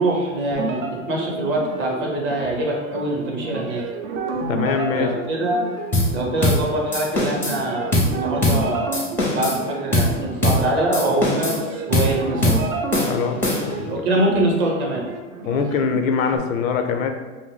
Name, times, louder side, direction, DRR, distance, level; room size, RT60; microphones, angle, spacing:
voice 1, 0.0-3.8 4.9-5.6 6.1-9.0 9.3-11.6 11.9-12.6 13.9-15.0, right 1 dB, 30° right, -1 dB, 0.6 m, -23 dB
sound 1, 0.5-16.4, right 3 dB, 75° right, 0.6 m, -31 dB
voice 2, 4.5-5.2 13.1-13.4 13.7-14.1 15.5-17.1, left 6 dB, 90° left, 6 dB, 0.5 m, -23 dB
sound 2, 5.9-6.1 6.4-6.6 6.9-7.6 7.9-8.1 8.4-8.6 8.9-9.6 9.9-10.1 10.4-10.6 10.9-11.6 11.9-12.1 12.4-12.6 12.9-13.8, left 1 dB, 5° left, 0.4 m, -21 dB
2.6 x 2.0 x 3.8 m, 1.2 s
hypercardioid pair, 125°, 39 cm